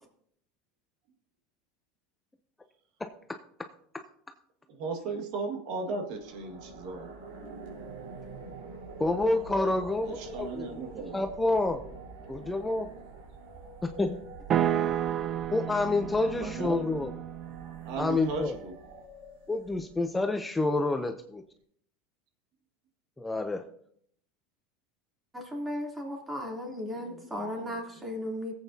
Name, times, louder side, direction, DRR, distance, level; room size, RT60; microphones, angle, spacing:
voice 1, 4.8-7.1 10.1-11.2 16.3-17.0 17.8-18.7 26.9-27.8, right 3 dB, 65° right, 3 dB, 1.8 m, -36 dB
sound 1, 6.1-20.2, right 4 dB, 85° right, 3.8 m, -46 dB
voice 2, 9.0-10.8 11.1-11.8 12.3-12.9 13.8-14.2 15.5-17.1 18.0-18.6 19.5-21.4 23.2-23.6, left 2 dB, 10° left, 6 dB, 0.6 m, -28 dB
sound 2, 14.5-18.6, right 10 dB, 40° right, 0.4 m, -32 dB
voice 3, 25.3-28.5, left 1 dB, 15° right, -1 dB, 3.1 m, -36 dB
16.0 x 8.2 x 2.8 m, 0.66 s
supercardioid pair, 115°, 0 cm